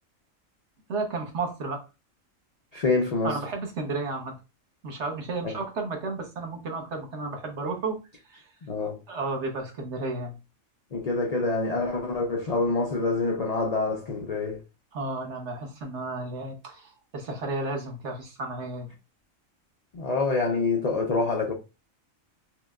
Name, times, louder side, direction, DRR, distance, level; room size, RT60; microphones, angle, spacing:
voice 1, 0.9-1.8 3.2-4.3 4.8-8.0 8.2-8.5 9.1-10.3 14.9-18.9, right 3 dB, 60° right, 1.1 m, -32 dB
voice 2, 2.7-3.3 8.6-9.0 10.9-14.6 19.9-21.5, left 3 dB, 60° left, 0.4 m, -26 dB
5.8 x 2.1 x 2.3 m
omnidirectional pair, 1.4 m